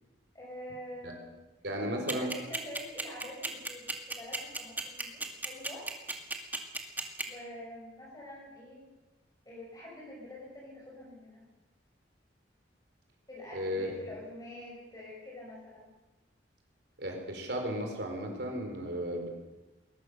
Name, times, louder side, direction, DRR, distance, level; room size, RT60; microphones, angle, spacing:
voice 1, 0.3-1.4 1.8-3.9 4.2-5.9 7.2-8.9 9.5-11.4 13.3-15.9, left 1 dB, 20° left, -4 dB, 5.9 m, -46 dB
voice 2, 1.6-2.3 13.5-13.9 17.0-19.3, equal, 60° right, 3 dB, 4.1 m, -34 dB
sound 1, 2.1-7.2, right 2 dB, 10° right, 2.1 m, -33 dB
21.5 x 20.0 x 6.6 m, 1.1 s
head